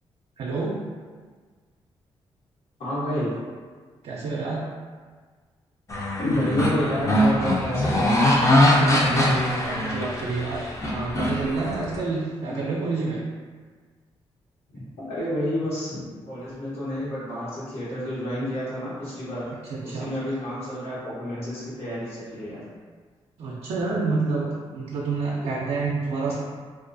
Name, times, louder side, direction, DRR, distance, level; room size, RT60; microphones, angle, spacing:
voice 1, 0.4-0.8 4.0-4.6 8.6-13.2 19.7-20.1 23.4-26.4, right 3 dB, 70° right, -4 dB, 0.4 m, -28 dB
voice 2, 2.8-3.3 6.2-8.1 14.7-19.5 19.8-22.6, left 1 dB, 75° left, -9 dB, 1.1 m, -29 dB
sound 1, 5.9-12.0, left 1 dB, 30° left, 0.4 m, -22 dB
2.3 x 2.2 x 2.5 m, 1.5 s
cardioid pair, 85°, 10 cm